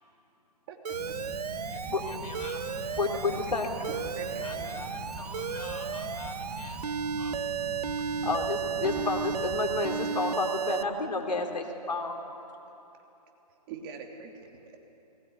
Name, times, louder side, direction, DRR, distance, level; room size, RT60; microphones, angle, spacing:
voice 1, 0.7-1.1 3.9-4.8 13.7-14.5, right 5 dB, 35° right, 2 dB, 3.0 m, -43 dB
Alarm, 0.8-10.8, right 7 dB, 70° right, 1.0 m, -34 dB
sound 1, 0.9-9.8, right 1 dB, 15° right, 6.3 m, -42 dB
voice 2, 1.7-2.8 4.4-7.4, left 5 dB, 65° left, 4 dB, 4.1 m, -47 dB
voice 3, 3.0-3.7 8.2-12.1, left 3 dB, 85° left, 3 dB, 3.3 m, -30 dB
20.0 x 19.5 x 9.8 m, 2.9 s
hypercardioid pair, 140°, 21 cm